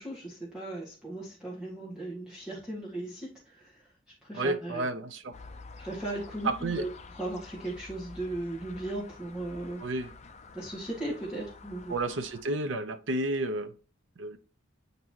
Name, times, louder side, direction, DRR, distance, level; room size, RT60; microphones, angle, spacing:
voice 1, 0.0-3.8 4.2-4.8 5.8-6.9 7.2-9.8 10.5-11.9, right 1 dB, 5° right, 1.8 m, -37 dB
voice 2, 4.3-5.3 6.4-6.9 9.8-10.1 11.9-13.7 14.2-14.4, right 2 dB, 75° right, 0.7 m, -31 dB
sound 1, 5.3-12.4, left 4 dB, 35° left, 0.6 m, -49 dB
9.0 x 4.0 x 2.9 m
head